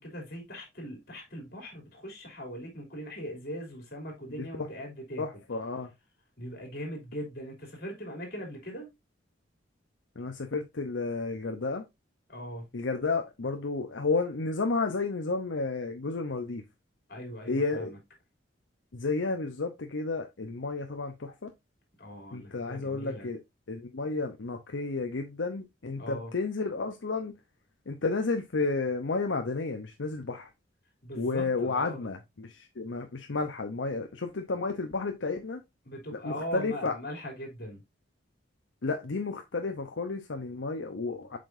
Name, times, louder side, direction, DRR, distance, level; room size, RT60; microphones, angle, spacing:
voice 1, 0.0-5.2 6.4-8.9 12.3-12.7 17.1-18.0 22.0-23.3 26.0-26.3 31.0-32.0 35.8-37.8, equal, 55° left, 3.2 m, -40 dB
voice 2, 4.4-4.7 5.2-5.9 10.2-11.8 12.7-16.6 17.5-17.9 18.9-21.5 22.3-23.4 23.7-27.4 27.9-30.5 31.2-35.6 36.2-37.0 38.8-41.4, left 3 dB, 85° left, 0.8 m, -32 dB
7.5 x 5.2 x 2.6 m
head